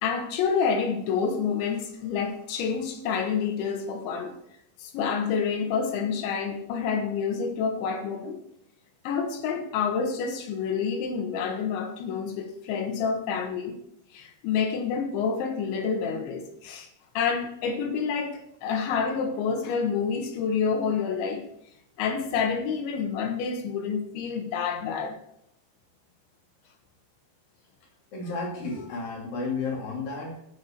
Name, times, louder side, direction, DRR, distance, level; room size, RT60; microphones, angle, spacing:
voice 1, 0.0-4.4 4.8-8.4 9.1-13.8 14.1-16.9 17.2-21.5 22.0-25.2, left 6 dB, 85° left, 5 dB, 3.8 m, -28 dB
voice 2, 28.1-30.4, left 3 dB, 55° left, -1 dB, 4.2 m, -32 dB
14.5 x 7.6 x 4.5 m, 0.78 s
omnidirectional pair, 5.1 m